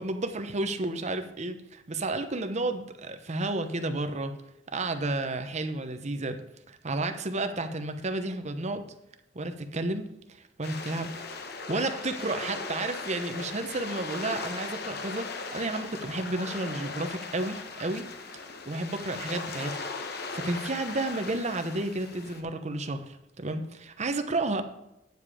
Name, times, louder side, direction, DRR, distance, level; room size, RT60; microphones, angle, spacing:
voice 1, 0.0-4.3 4.7-6.4 6.7-8.9 9.3-10.1 10.6-11.1 11.7-18.0 18.3-19.7 20.3-24.6, right 2 dB, 40° right, 8 dB, 0.9 m, -31 dB
sound 1, 10.6-22.4, left 4 dB, 60° left, 1.0 m, -38 dB
9.5 x 7.3 x 4.9 m, 0.88 s
head